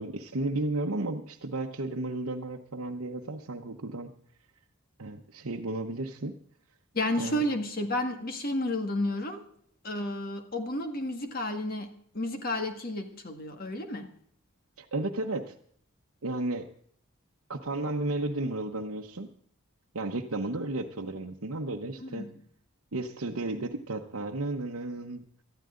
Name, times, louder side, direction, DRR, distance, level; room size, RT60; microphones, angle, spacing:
voice 1, 0.0-4.1 5.0-6.4 7.2-7.4 14.8-15.5 16.2-16.7 17.5-19.3 19.9-22.3 22.9-25.2, right 2 dB, 75° right, 1 dB, 1.0 m, -33 dB
voice 2, 6.9-9.4 9.8-14.1 22.0-22.3, left 1 dB, 40° left, 6 dB, 1.8 m, -31 dB
19.0 x 13.0 x 3.8 m, 0.62 s
head